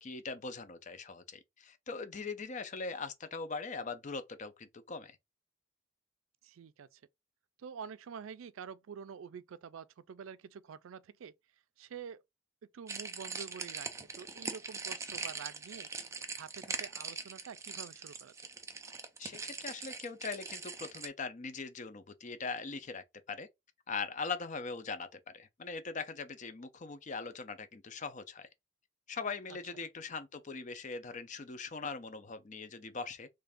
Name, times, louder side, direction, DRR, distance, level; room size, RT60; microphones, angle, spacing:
voice 1, 0.0-5.2 19.2-23.5 23.9-28.5 29.1-33.3, left 4 dB, 40° left, 0.5 m, -41 dB
voice 2, 6.4-7.0 7.6-11.3 11.8-12.2 12.7-15.9 16.3-18.3, right 7 dB, 80° right, 0.4 m, -47 dB
sound 1, 12.9-21.1, right 4 dB, 15° right, 0.4 m, -42 dB
3.2 x 2.5 x 3.4 m
head